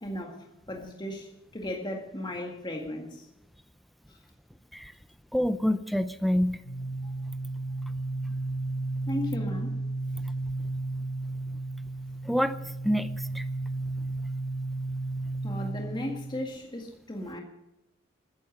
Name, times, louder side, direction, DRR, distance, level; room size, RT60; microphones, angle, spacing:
voice 1, 0.0-0.4 0.7-1.3 1.5-3.3 4.1-4.2 7.0-7.1 9.1-9.8 15.4-17.4, left 1 dB, 25° left, 1 dB, 1.9 m, -35 dB
voice 2, 5.3-6.6 12.2-12.6 12.8-13.1 13.3-13.4, equal, ahead, 12 dB, 0.6 m, -26 dB
sound 1, 6.6-16.4, right 2 dB, 70° left, 3.7 m, -33 dB
14.0 x 10.5 x 9.8 m, 0.88 s
head